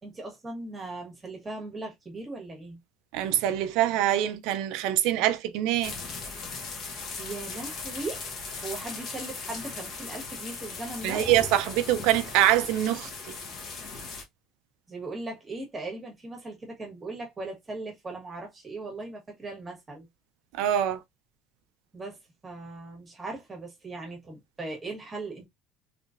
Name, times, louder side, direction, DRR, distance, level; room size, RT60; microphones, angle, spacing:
voice 1, 0.0-2.8 7.2-8.2 8.6-11.2 14.9-20.1 21.9-25.5, right 2 dB, 15° right, 1.4 m, -38 dB
voice 2, 3.1-5.9 11.0-13.3 20.5-21.0, right 12 dB, 70° right, 0.6 m, -24 dB
sound 1, 5.8-14.2, left 4 dB, 45° left, 1.0 m, -38 dB
3.3 x 3.1 x 2.5 m
cardioid pair, 170°, 0 cm